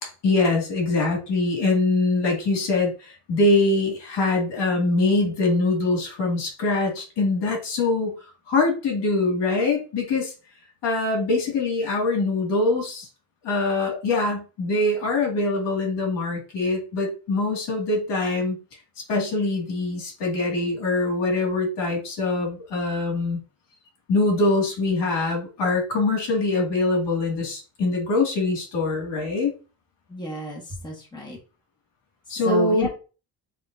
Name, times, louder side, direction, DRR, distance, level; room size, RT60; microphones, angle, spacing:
voice 1, 0.0-8.1 8.5-10.3 10.8-13.1 13.4-18.6 19.1-23.4 24.1-29.5 32.3-32.9, left 2 dB, 70° left, -1 dB, 2.2 m, -23 dB
voice 2, 30.1-31.4 32.3-32.9, equal, 10° left, -2 dB, 1.5 m, -31 dB
6.8 x 2.8 x 2.7 m, 0.34 s
cardioid pair, 135°, 43 cm